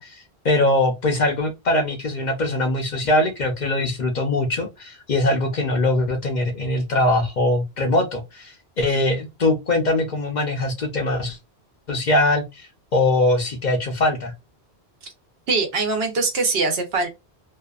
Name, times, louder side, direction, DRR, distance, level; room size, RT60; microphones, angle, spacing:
voice 1, 0.0-11.4 11.9-14.3, left 2 dB, 55° left, 0.6 m, -22 dB
voice 2, 15.5-17.1, right 3 dB, 70° right, 0.9 m, -22 dB
2.5 x 2.3 x 2.3 m
omnidirectional pair, 1.1 m